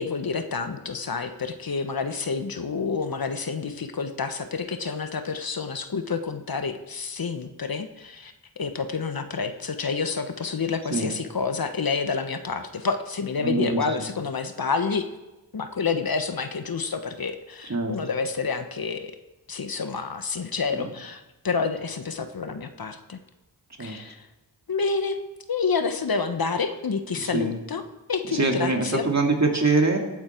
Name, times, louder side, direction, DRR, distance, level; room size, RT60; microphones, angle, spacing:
voice 1, 0.0-15.1 15.5-19.1 19.5-23.2 23.8-24.3 24.7-25.2 25.5-27.8 28.1-29.1, left 5 dB, 55° left, 8 dB, 1.2 m, -28 dB
voice 2, 13.4-14.1 17.7-18.0 20.7-20.9 23.8-24.0 27.3-27.5 28.3-30.0, right 3 dB, 40° right, 2 dB, 2.6 m, -24 dB
17.5 x 8.7 x 4.5 m, 1.0 s
cardioid pair, 45°, 42 cm